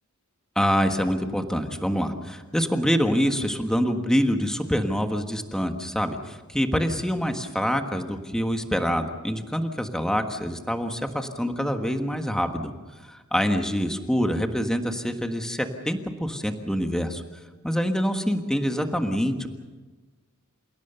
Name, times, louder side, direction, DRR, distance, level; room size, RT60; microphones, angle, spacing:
voice 1, 0.5-12.7 13.1-17.2 17.6-19.5, equal, 5° left, 5 dB, 1.5 m, -25 dB
29.0 x 17.0 x 6.8 m, 1.3 s
head